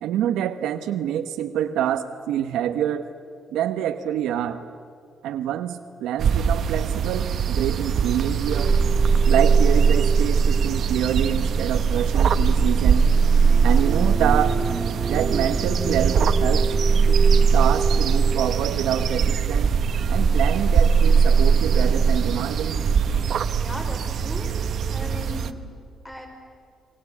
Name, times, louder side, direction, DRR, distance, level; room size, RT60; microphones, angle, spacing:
voice 1, 0.0-3.0 3.5-4.6 5.2-8.7 9.3-13.1 13.6-14.6 15.1-16.7 17.1-17.2 17.5-19.7 20.1-22.8, right 10 dB, 90° right, 7 dB, 1.0 m, -26 dB
sound 1, 6.2-25.5, right 7 dB, 60° right, 1.1 m, -25 dB
sound 2, 8.4-23.4, right 5 dB, 30° right, 2.2 m, -21 dB
voice 2, 23.5-24.5 24.9-25.6 26.0-26.3, left 1 dB, 10° left, 2 dB, 5.1 m, -37 dB
26.5 x 22.5 x 8.4 m, 2.3 s
cardioid pair, 90°, 0 cm